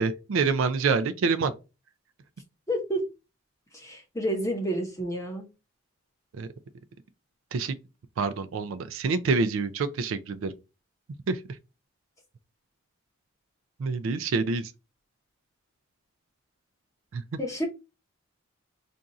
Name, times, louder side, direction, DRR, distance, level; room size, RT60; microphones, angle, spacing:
voice 1, 0.0-1.5 6.3-6.5 7.5-7.8 8.2-10.5 11.3-11.4 13.8-14.7 17.1-17.2, right 4 dB, 70° right, 0.4 m, -26 dB
voice 2, 2.7-3.1 3.7-5.5 17.4-17.7, equal, 15° left, 0.8 m, -29 dB
2.6 x 2.4 x 3.9 m
head